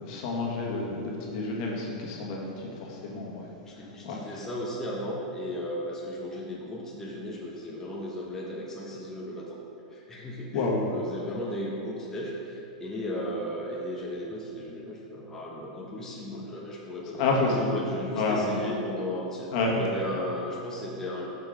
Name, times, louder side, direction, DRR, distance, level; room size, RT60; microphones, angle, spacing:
voice 1, 0.0-3.5 4.0-4.3 10.5-10.8 17.2-17.7 18.1-18.6 19.5-19.8, left 3 dB, 55° left, -2 dB, 1.6 m, -29 dB
voice 2, 3.7-9.6 9.9-19.5 19.8-21.3, equal, 10° left, -4 dB, 1.1 m, -35 dB
6.6 x 6.0 x 4.9 m, 2.8 s
hypercardioid pair, 130°, 4 cm